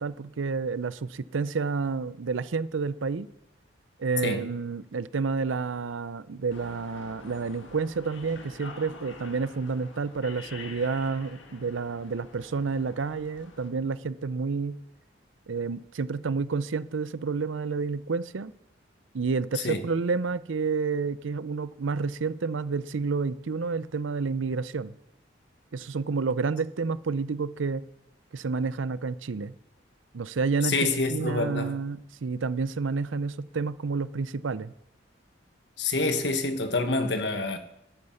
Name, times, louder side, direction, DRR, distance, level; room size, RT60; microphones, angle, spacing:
voice 1, 0.0-3.3 4.0-14.8 15.5-18.5 19.1-24.9 25.7-27.8 28.3-29.5 30.1-34.7, right 4 dB, 90° right, 0.6 m, -30 dB
sound 1, 6.5-13.7, left 3 dB, 80° left, 1.7 m, -47 dB
voice 2, 30.6-31.7 35.8-37.6, left 3 dB, 65° left, 1.4 m, -27 dB
11.5 x 9.7 x 7.0 m
head